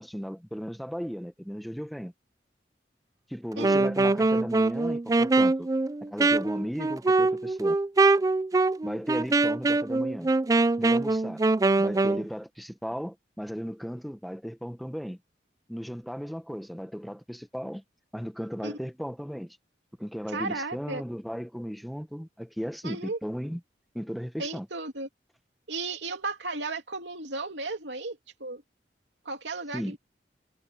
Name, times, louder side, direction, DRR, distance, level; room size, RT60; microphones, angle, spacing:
voice 1, 0.0-2.1 3.3-5.7 6.0-7.8 8.8-10.3 10.8-11.4 11.8-15.2 15.7-17.8 18.1-19.6 20.0-23.6 23.9-24.7 29.7-30.0, equal, ahead, 1.1 m, -36 dB
Wind instrument woodwind instrument, 3.5-12.3, right 3 dB, 20° right, 0.3 m, -23 dB
voice 2, 3.6-3.9 18.6-18.8 20.3-21.0 22.8-23.2 24.4-25.1 25.7-28.6 29.2-30.0, right 3 dB, 85° right, 3.0 m, -34 dB
head